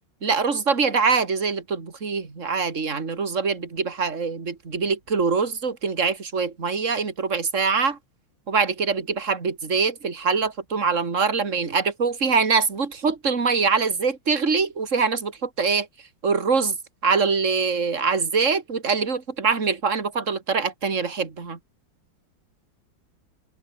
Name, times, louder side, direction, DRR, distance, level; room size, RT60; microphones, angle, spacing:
voice 1, 0.2-8.0 8.5-15.9 16.2-16.8 17.0-21.6, right 5 dB, 40° right, 3.0 m, -24 dB
omnidirectional pair, 2.1 m